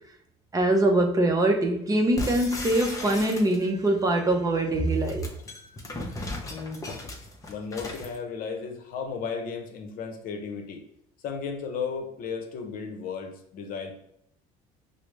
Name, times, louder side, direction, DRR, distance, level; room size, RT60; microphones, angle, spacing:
voice 1, 0.5-5.2, right 1 dB, 20° right, 0.6 m, -23 dB
sound 1, 2.2-3.9 4.9-8.2, left 2 dB, 20° left, 0.6 m, -36 dB
voice 2, 6.5-6.8 7.5-10.8 11.2-13.9, left 5 dB, 65° left, 0.7 m, -34 dB
4.8 x 2.0 x 3.2 m
supercardioid pair, 100°, 16 cm